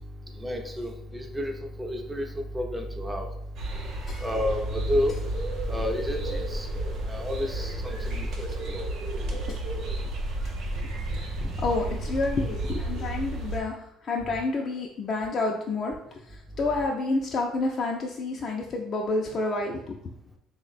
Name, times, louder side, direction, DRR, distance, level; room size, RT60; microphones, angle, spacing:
voice 1, 0.4-3.3 4.2-5.2 5.7-6.7 7.0-8.9 11.4-11.6, equal, 10° right, 3 dB, 0.5 m, -30 dB
sound 1, 3.5-13.6, right 1 dB, 65° right, 0.6 m, -32 dB
voice 2, 11.3-20.1, left 3 dB, 45° left, 0 dB, 0.4 m, -29 dB
3.3 x 2.1 x 4.0 m, 0.76 s
cardioid pair, 100°, 0 cm